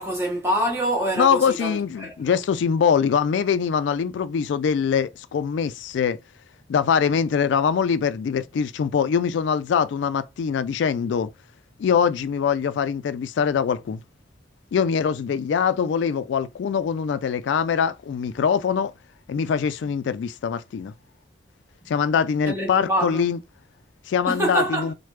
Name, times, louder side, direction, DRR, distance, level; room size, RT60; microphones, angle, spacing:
voice 1, 0.0-2.4 22.4-23.3 24.3-24.9, right 1 dB, 15° right, 1.0 m, -26 dB
voice 2, 1.2-6.2 6.7-11.3 11.8-14.0 14.7-18.9 19.3-20.9 21.9-23.4 24.1-24.9, left 7 dB, 80° left, 0.3 m, -23 dB
3.2 x 2.1 x 3.1 m
head